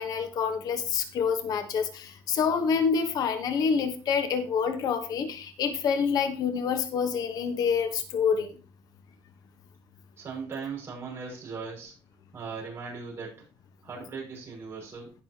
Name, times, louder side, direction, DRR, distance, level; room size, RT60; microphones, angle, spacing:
voice 1, 0.0-8.6, left 6 dB, 60° left, 8 dB, 1.2 m, -27 dB
voice 2, 10.2-11.9 12.3-13.4 13.8-15.1, right 5 dB, 35° right, -3 dB, 6.1 m, -38 dB
16.5 x 6.4 x 2.9 m, 0.33 s
cardioid pair, 170°, 7 cm